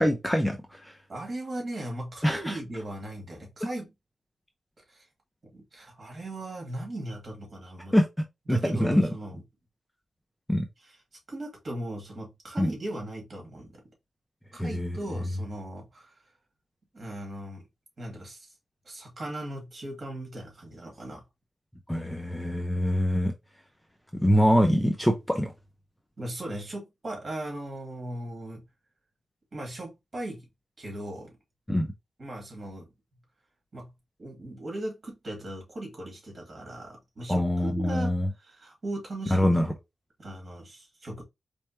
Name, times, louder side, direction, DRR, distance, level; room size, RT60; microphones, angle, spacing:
voice 1, 0.0-1.0 2.2-2.6 7.9-8.1 8.5-9.1 10.5-10.7 12.6-12.7 14.6-15.0 21.9-23.3 24.2-25.5 31.7-31.9 37.3-38.3 39.3-39.7, equal, 5° left, 0.5 m, -24 dB
voice 2, 1.1-3.9 4.9-5.0 5.5-7.9 8.5-9.4 10.8-11.0 11.3-13.7 14.5-16.2 16.9-17.7 18.0-18.5 18.8-21.2 26.2-28.6 29.5-30.5 30.8-31.4 32.2-32.9 33.7-33.9 34.2-39.6 40.2-41.2, right 1 dB, 40° right, 2.4 m, -38 dB
4.2 x 3.4 x 3.0 m
wide cardioid pair, 135°, 0 cm